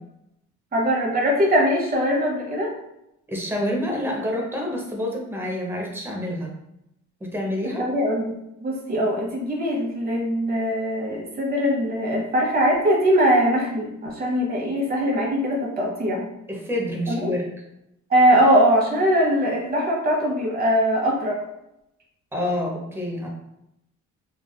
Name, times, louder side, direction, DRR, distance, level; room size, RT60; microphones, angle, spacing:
voice 1, 0.7-2.7 7.8-16.2 17.1-17.3 18.1-21.4, equal, 30° right, -3 dB, 1.0 m, -21 dB
voice 2, 3.3-6.5 7.2-7.9 16.5-17.5 22.3-23.3, left 1 dB, 10° right, -1 dB, 0.7 m, -27 dB
3.2 x 2.4 x 2.2 m, 0.84 s
cardioid pair, 90°, 30 cm